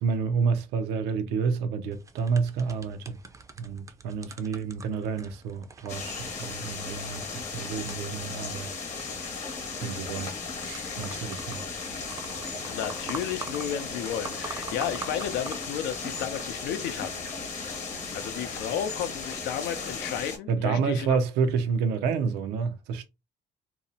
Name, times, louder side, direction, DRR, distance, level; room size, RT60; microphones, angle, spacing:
voice 1, 0.0-3.2 3.6-8.7 9.8-10.3 10.6-11.6 12.4-12.8 15.1-15.2 20.5-23.1, right 5 dB, 85° right, 0.5 m, -29 dB
sound 1, 1.9-16.5, right 4 dB, 20° right, 0.4 m, -45 dB
sound 2, 5.9-20.4, left 4 dB, 45° left, 0.9 m, -36 dB
voice 2, 12.7-17.1 18.1-21.2, left 9 dB, 80° left, 0.5 m, -32 dB
2.7 x 2.0 x 2.7 m
cardioid pair, 110°, 17 cm